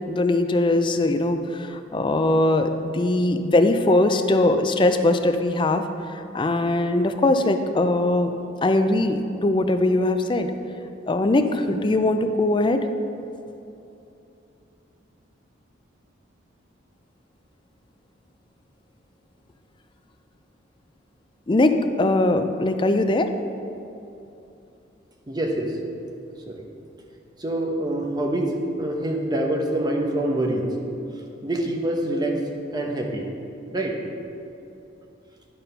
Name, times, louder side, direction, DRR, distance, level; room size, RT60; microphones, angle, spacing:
voice 1, 0.1-5.8 6.1-8.3 8.6-10.5 11.1-12.9 21.5-23.3, left 2 dB, 25° left, 7 dB, 0.4 m, -21 dB
voice 2, 25.3-25.8 26.5-26.7 27.4-30.8 31.4-33.3 33.7-34.0, right 1 dB, 20° right, 1 dB, 0.8 m, -26 dB
11.0 x 4.1 x 5.5 m, 2.7 s
head